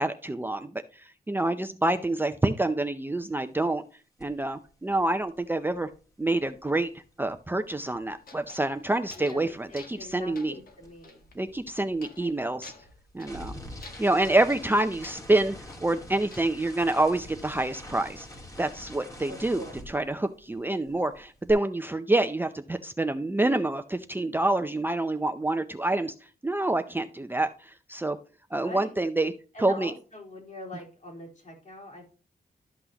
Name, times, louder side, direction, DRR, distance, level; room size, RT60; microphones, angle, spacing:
voice 1, 0.0-3.8 4.2-5.9 6.2-6.9 7.2-10.5 11.4-12.7 13.1-13.6 14.0-15.5 15.8-18.3 18.6-19.6 19.9-26.1 26.4-28.2 28.5-29.3 29.6-29.9, right 2 dB, 15° right, 8 dB, 0.5 m, -27 dB
sound 1, 4.2-4.4 4.7-9.1 9.3-20.6 20.9-21.5, left 1 dB, 20° left, 1.9 m, -46 dB
sound 2, 8.2-9.5 9.7-10.1 10.4-11.4 12.0-12.3 12.6-13.5 13.8-15.2 15.7-17.1, left 4 dB, 65° left, 1.6 m, -50 dB
voice 2, 9.2-11.2 12.2-12.3 14.5-14.6 19.3-19.8 28.6-28.9 29.5-32.1, left 1 dB, 50° left, -1 dB, 3.8 m, -43 dB
12.5 x 6.0 x 2.9 m, 0.36 s
wide cardioid pair, 120°, 16 cm